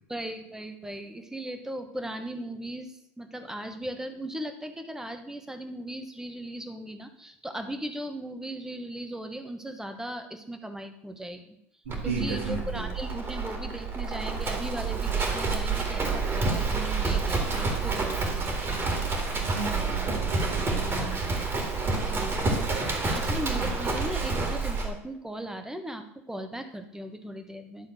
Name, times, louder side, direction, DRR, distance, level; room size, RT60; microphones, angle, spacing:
voice 1, 0.1-11.6 12.0-18.8 21.4-21.5 21.9-27.9, right 1 dB, 5° right, 8 dB, 1.2 m, -38 dB
Livestock farm animals working animals, 11.9-24.9, right 3 dB, 35° right, 2.2 m, -28 dB
voice 2, 11.9-12.9 19.4-21.2, right 4 dB, 85° right, -2 dB, 2.0 m, -34 dB
11.0 x 3.7 x 6.2 m, 0.77 s
hypercardioid pair, 80°, 7 cm